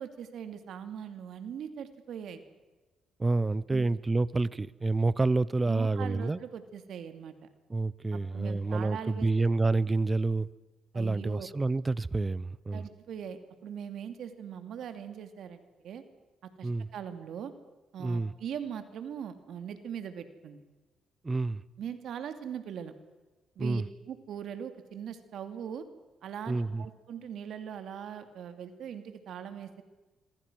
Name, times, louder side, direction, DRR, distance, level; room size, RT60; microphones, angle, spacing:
voice 1, 0.0-2.4 3.7-3.9 5.7-7.5 8.1-9.5 10.9-11.5 12.7-16.0 16.4-17.5 17.9-20.6 21.8-22.9 23.6-25.8 26.2-29.8, right 8 dB, 70° right, 9 dB, 2.5 m, -41 dB
voice 2, 3.2-6.4 7.7-10.5 10.9-12.8 16.6-16.9 18.0-18.3 21.2-21.6 23.6-23.8 26.5-26.9, right 3 dB, 20° right, 20 dB, 0.8 m, -28 dB
26.0 x 23.5 x 6.3 m, 1.2 s
cardioid pair, 90°, 0 cm